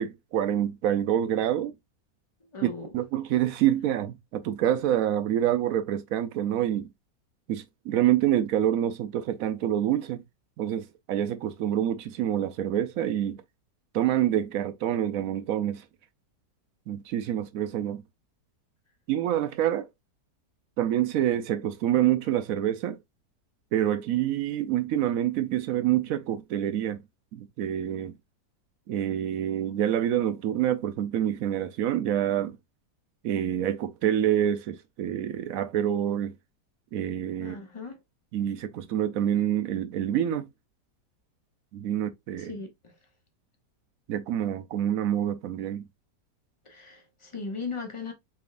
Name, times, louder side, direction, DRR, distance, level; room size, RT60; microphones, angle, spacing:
voice 1, 0.0-1.7 2.6-6.9 7.5-10.2 10.6-13.4 13.9-15.8 16.9-18.0 19.1-19.9 20.8-23.0 23.7-27.0 27.3-28.1 28.9-32.6 33.2-36.3 36.9-37.6 38.3-40.5 41.7-42.5 44.1-45.8, right 11 dB, 70° right, 0.8 m, -27 dB
voice 2, 2.5-2.9 37.4-38.0 42.4-42.9 46.6-48.1, left 4 dB, 25° left, 0.7 m, -38 dB
4.2 x 3.5 x 2.4 m
omnidirectional pair, 1.8 m